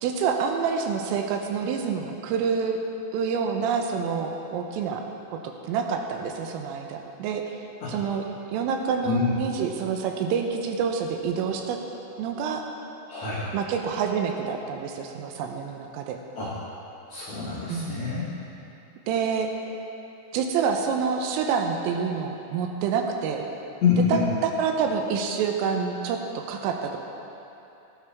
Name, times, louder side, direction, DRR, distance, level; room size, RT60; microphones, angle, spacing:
voice 1, 0.0-2.8 3.1-5.0 5.4-7.6 7.9-8.2 8.5-11.8 12.2-12.6 13.5-16.2 17.7-18.0 19.1-19.5 20.3-23.5 24.1-27.0, right 6 dB, 90° right, 3 dB, 3.5 m, -27 dB
voice 2, 9.0-9.3 13.1-13.5 16.4-16.5 17.1-18.3 23.8-24.3, left 5 dB, 55° left, -9 dB, 2.1 m, -25 dB
17.5 x 11.5 x 3.5 m, 2.8 s
omnidirectional pair, 5.7 m